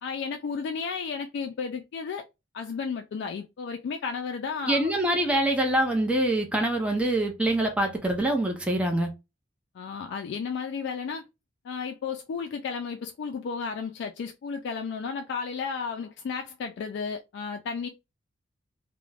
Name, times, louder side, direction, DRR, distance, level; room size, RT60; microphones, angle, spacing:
voice 1, 0.0-2.2 2.5-4.9 9.7-11.2 11.6-17.9, left 5 dB, 60° left, 0.3 m, -33 dB
voice 2, 4.7-9.1, right 1 dB, 5° right, 0.5 m, -25 dB
2.4 x 2.1 x 3.1 m
head